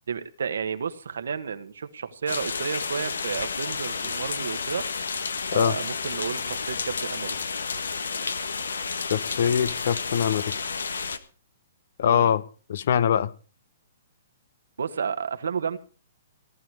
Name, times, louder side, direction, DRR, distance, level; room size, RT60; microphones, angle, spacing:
voice 1, 0.1-4.8 5.5-7.4 12.1-12.3 14.8-15.8, right 6 dB, 80° right, 1.5 m, -31 dB
sound 1, 2.3-11.2, left 5 dB, 85° left, 1.5 m, -31 dB
voice 2, 9.1-10.5 12.0-12.4 12.7-13.3, left 8 dB, 65° left, 1.1 m, -23 dB
17.5 x 11.5 x 4.8 m
hypercardioid pair, 135°, 0 cm